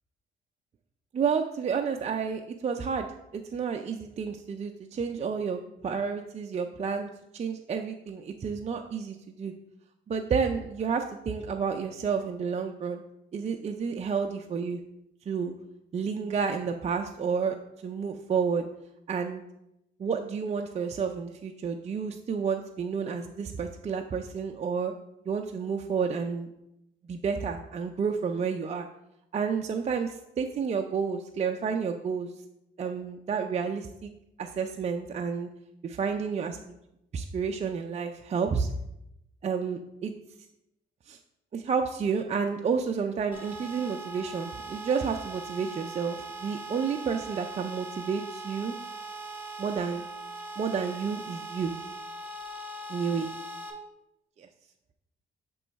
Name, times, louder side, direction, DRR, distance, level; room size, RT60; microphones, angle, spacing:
voice 1, 1.1-3.1 3.3-9.5 10.1-13.0 13.3-14.8 15.3-15.5 15.9-17.6 17.8-18.6 19.1-19.4 20.0-24.9 25.3-26.5 27.1-28.9 29.3-32.3 32.8-34.1 34.4-35.5 35.8-36.7 37.1-38.7 39.4-40.1 41.1-41.2 41.5-48.7 49.6-50.0 50.6-51.7 52.9-53.3 54.4-54.5, right 6 dB, 35° right, 4 dB, 0.4 m, -30 dB
sound 1, 43.3-53.7, right 2 dB, 10° right, 1.4 m, -40 dB
7.0 x 3.0 x 4.5 m, 0.84 s
cardioid pair, 90°, 20 cm